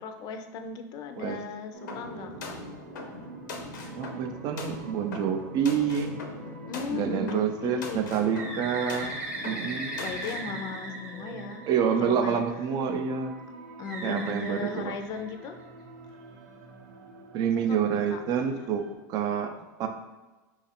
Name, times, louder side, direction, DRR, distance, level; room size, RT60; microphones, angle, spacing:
voice 1, 0.0-2.6 6.7-8.1 10.0-11.7 12.0-12.4 13.8-15.6 17.7-18.2, left 5 dB, 45° left, 6 dB, 0.4 m, -37 dB
sound 1, 1.7-19.0, right 3 dB, 80° right, 0.7 m, -46 dB
sound 2, 1.9-10.5, left 3 dB, 85° left, 0.6 m, -41 dB
voice 2, 4.0-6.2 6.9-9.2 9.4-10.0 11.7-13.4 14.0-14.9 17.3-19.9, right 7 dB, 45° right, 7 dB, 0.4 m, -28 dB
Bird, 8.3-12.1 13.8-15.6, right 2 dB, 10° right, 0.7 m, -38 dB
2.9 x 2.4 x 4.2 m, 1.2 s
supercardioid pair, 115°, 10 cm